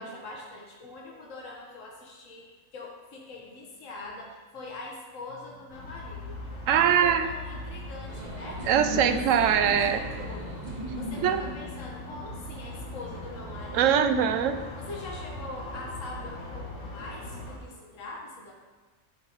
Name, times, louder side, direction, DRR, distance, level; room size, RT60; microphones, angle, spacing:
voice 1, 0.0-6.4 6.7-8.6 9.0-10.5 10.9-14.1 14.8-18.5, left 3 dB, 85° left, -1 dB, 1.4 m, -43 dB
sound 1, 5.7-17.6, left 1 dB, 70° left, 1.6 m, -40 dB
voice 2, 6.7-7.3 8.7-10.0 11.2-11.4 13.7-14.6, right 8 dB, 90° right, 9 dB, 1.0 m, -22 dB
sound 2, 8.1-12.5, right 1 dB, 40° right, 1.0 m, -38 dB
11.0 x 3.9 x 4.4 m, 1.3 s
omnidirectional pair, 1.3 m